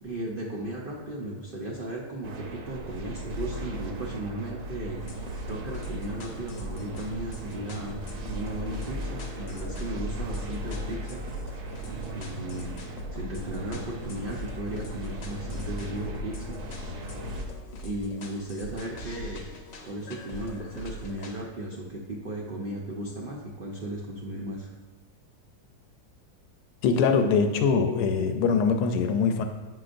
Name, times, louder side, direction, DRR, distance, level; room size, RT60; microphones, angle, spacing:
voice 1, 0.0-5.0 5.5-8.0 8.3-11.2 12.1-12.7 13.1-16.6 17.8-19.5 19.8-24.7, right 1 dB, 45° right, -3 dB, 0.7 m, -36 dB
sound 1, 2.2-17.5, equal, 75° right, 1.3 m, -37 dB
sound 2, 4.9-21.4, left 1 dB, 55° left, 0.8 m, -41 dB
voice 2, 26.8-29.4, left 5 dB, 85° left, 6 dB, 1.2 m, -23 dB
7.9 x 5.8 x 2.5 m, 1.1 s
omnidirectional pair, 1.7 m